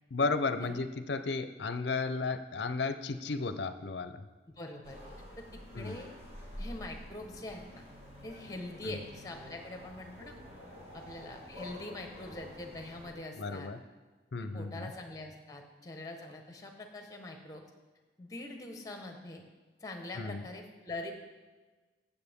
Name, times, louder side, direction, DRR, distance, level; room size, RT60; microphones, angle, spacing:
voice 1, 0.1-4.2 5.7-6.0 8.8-9.0 13.4-13.8 14.3-14.9 20.2-20.4, left 4 dB, 65° left, 10 dB, 0.6 m, -34 dB
voice 2, 4.5-5.0 5.4-6.1 6.6-7.8 8.2-10.4 10.9-13.7 14.5-17.6 18.2-19.4 19.8-21.1, left 2 dB, 20° left, 4 dB, 1.1 m, -43 dB
sound 1, 4.8-13.1, equal, 35° right, 2.0 m, -48 dB
15.0 x 7.3 x 3.6 m, 1.3 s
head